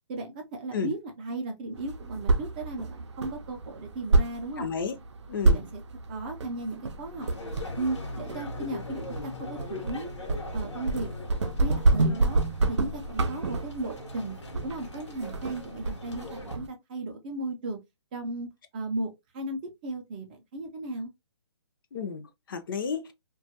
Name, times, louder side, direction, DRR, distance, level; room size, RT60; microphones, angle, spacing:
voice 1, 0.1-4.7 5.4-5.7 6.1-7.3 7.8-10.2 10.5-11.1 11.6-12.4 12.7-14.4 14.6-17.8 18.1-21.1, right 2 dB, 20° right, 0.4 m, -35 dB
sound 1, 1.7-16.7, right 2 dB, 80° right, 0.5 m, -29 dB
voice 2, 4.6-5.0 5.3-5.7 21.9-23.1, left 6 dB, 50° left, 0.5 m, -32 dB
sound 2, 7.2-16.6, left 3 dB, 85° left, 0.9 m, -42 dB
2.2 x 2.1 x 2.7 m
hypercardioid pair, 155°, 15 cm